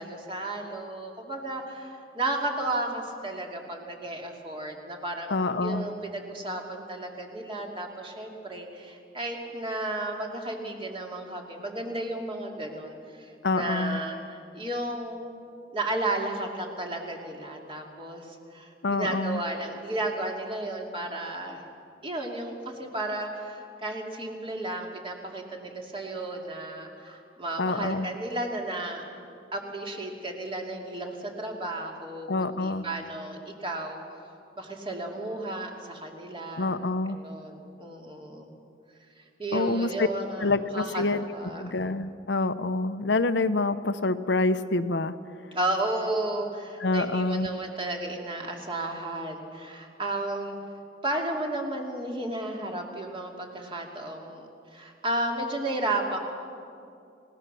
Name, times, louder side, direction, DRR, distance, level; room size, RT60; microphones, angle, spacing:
voice 1, 0.0-15.3 15.7-21.6 22.0-29.0 29.5-34.0 34.6-36.8 37.1-38.5 39.4-41.7 45.5-50.6 51.0-56.2, right 2 dB, 30° right, 0 dB, 2.9 m, -33 dB
voice 2, 5.3-5.9 13.4-14.0 18.8-19.4 27.6-28.1 32.3-32.9 36.6-37.2 39.5-40.1 40.4-41.3 41.6-45.1 46.8-47.5, left 3 dB, 70° left, 10 dB, 0.8 m, -26 dB
29.0 x 17.5 x 6.9 m, 2.5 s
head